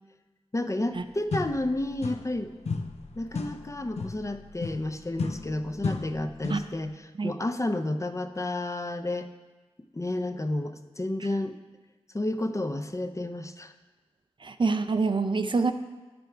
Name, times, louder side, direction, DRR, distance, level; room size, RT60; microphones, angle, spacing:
voice 1, 0.5-2.5 3.1-6.9 7.2-9.3 9.9-11.5 12.1-13.7, left 1 dB, 30° left, 8 dB, 0.5 m, -31 dB
sound 1, 0.9-1.0 1.3-2.4 2.7-6.8, left 4 dB, 80° left, 0.5 m, -35 dB
voice 2, 14.4-15.7, right 4 dB, 50° right, 9 dB, 0.4 m, -26 dB
8.4 x 5.2 x 4.5 m, 1.2 s
cardioid pair, 40°, 11 cm